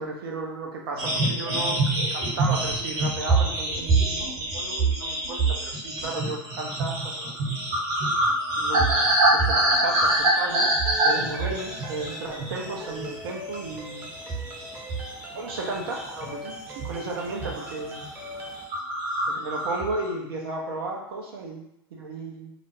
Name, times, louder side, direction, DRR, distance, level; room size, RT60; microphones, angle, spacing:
voice 1, 0.0-1.8 2.1-7.3 8.5-14.1 15.3-16.6 16.8-18.0 19.3-22.5, right 2 dB, 70° right, 0 dB, 0.7 m, -34 dB
sound 1, 1.0-12.7 13.0-13.3 13.7-15.2 15.5-16.3 16.8-17.0 17.3-17.7 18.0-18.1 18.4-18.5 18.7-20.1, right 2 dB, 45° right, 1.2 m, -25 dB
sound 2, 10.9-18.6, equal, 15° right, 0.7 m, -40 dB
2.5 x 2.1 x 3.1 m, 0.85 s
hypercardioid pair, 85°, 13 cm